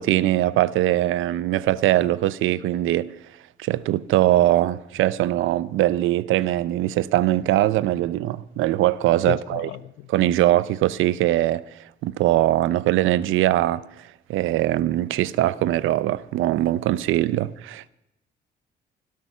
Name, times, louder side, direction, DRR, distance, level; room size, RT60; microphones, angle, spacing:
voice 1, 0.0-3.1 3.6-9.7 10.1-13.8 14.3-17.9, right 14 dB, 90° right, 0.7 m, -21 dB
voice 2, 9.3-10.1, left 15 dB, 90° left, 0.6 m, -33 dB
17.0 x 12.5 x 5.7 m
cardioid pair, 90°, 20 cm